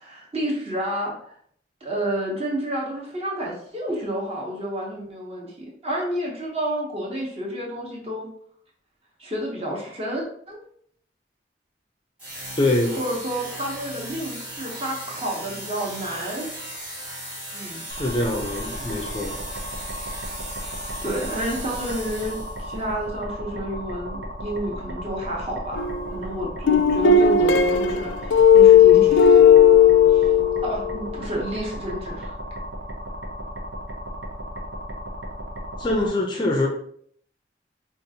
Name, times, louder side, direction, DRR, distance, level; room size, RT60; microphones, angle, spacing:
voice 1, 0.0-1.3 1.8-8.3 9.2-10.6 13.0-16.5 17.5-17.8 20.6-20.7 21.0-25.8 26.1-29.4 30.0-30.3 30.6-32.4, equal, 30° right, -2 dB, 0.9 m, -30 dB
sound 1, 12.2-22.7, right 1 dB, 10° right, 1.2 m, -37 dB
voice 2, 12.6-13.0 17.9-19.4 35.8-36.7, left 2 dB, 25° left, 1 dB, 0.4 m, -24 dB
sound 2, 17.9-36.1, equal, 75° right, 0.7 m, -35 dB
sound 3, 25.8-26.2 26.7-31.0, left 7 dB, 90° left, 0.3 m, -15 dB
5.0 x 2.4 x 2.8 m, 0.63 s
head